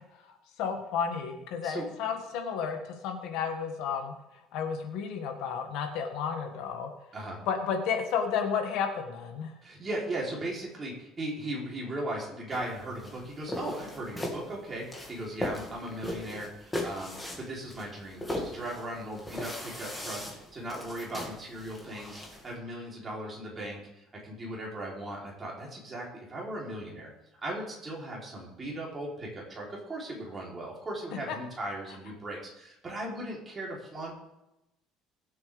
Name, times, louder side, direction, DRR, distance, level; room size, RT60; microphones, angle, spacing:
voice 1, 0.6-2.8 3.0-4.1 4.5-6.9 7.5-9.5, left 6 dB, 65° left, 4 dB, 1.9 m, -32 dB
voice 2, 9.6-27.1 27.4-34.1, right 1 dB, 20° right, -4 dB, 3.5 m, -38 dB
sound 1, 12.5-22.5, left 1 dB, 10° left, 2.0 m, -39 dB
22.0 x 8.0 x 3.5 m, 0.89 s
cardioid pair, 165°, 0 cm